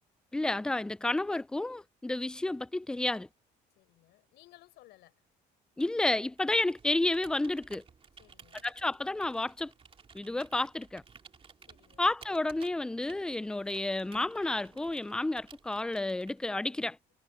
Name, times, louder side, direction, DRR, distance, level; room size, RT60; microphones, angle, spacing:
voice 1, 0.3-3.3 5.8-7.8 8.6-9.7 10.1-11.0 12.0-17.0, left 2 dB, 5° left, 0.3 m, -31 dB
voice 2, 3.7-5.2 8.2-8.7 11.6-12.1, left 17 dB, 85° left, 4.6 m, -60 dB
Computer keyboard, 6.3-16.6, right 5 dB, 35° right, 2.4 m, -56 dB
cardioid pair, 110°, 17 cm